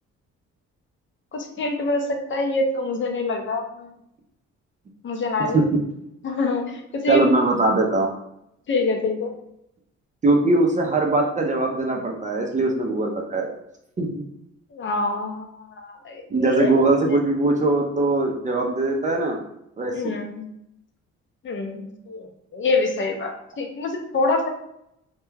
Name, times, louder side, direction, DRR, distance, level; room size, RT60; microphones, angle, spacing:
voice 1, 1.3-3.9 5.0-5.6 6.2-7.3 8.7-9.3 14.7-17.2 19.9-20.5 21.4-22.3 22.5-24.5, left 3 dB, 40° left, 3 dB, 0.5 m, -26 dB
voice 2, 7.1-8.1 10.2-13.5 14.0-14.2 16.3-19.4 19.8-20.1, right 2 dB, 25° right, 1 dB, 0.4 m, -21 dB
2.2 x 2.2 x 3.1 m, 0.79 s
cardioid pair, 90°, 30 cm